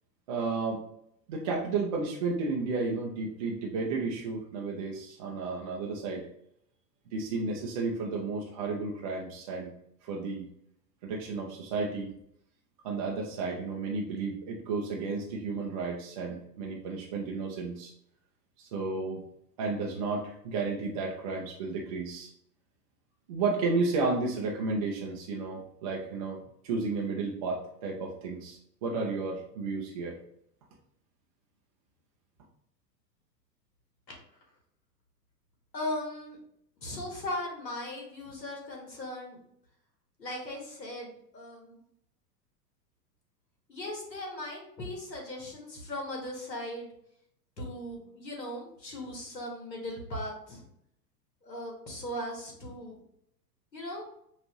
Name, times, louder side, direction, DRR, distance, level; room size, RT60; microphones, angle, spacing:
voice 1, 0.3-0.8 1.3-6.3 7.1-9.7 10.0-10.5 11.0-12.1 12.8-17.9 18.6-19.2 19.6-22.3 23.3-30.2, right 3 dB, 25° right, -2 dB, 0.3 m, -32 dB
voice 2, 35.7-36.4 36.8-39.4 40.2-41.8 43.7-46.9 47.6-50.6 51.4-53.0 53.7-54.0, left 1 dB, 85° left, 0 dB, 1.5 m, -38 dB
5.4 x 2.5 x 2.9 m, 0.72 s
figure-of-eight pair, 100°, 50 cm